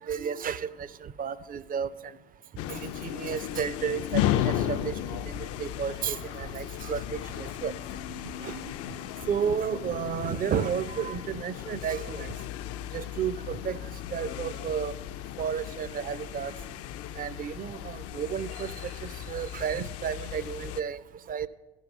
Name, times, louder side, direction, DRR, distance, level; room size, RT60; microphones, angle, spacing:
voice 1, 0.1-1.9 2.7-4.9 5.3-7.7 8.4-8.6 9.3-12.3 12.9-13.8 14.1-14.9 15.4-16.5 17.2-21.0 21.3-21.5, right 7 dB, 25° right, 0.5 m, -32 dB
sound 1, 2.6-20.8, left 12 dB, 45° left, 0.5 m, -35 dB
14.0 x 5.5 x 6.0 m
hypercardioid pair, 70°, 34 cm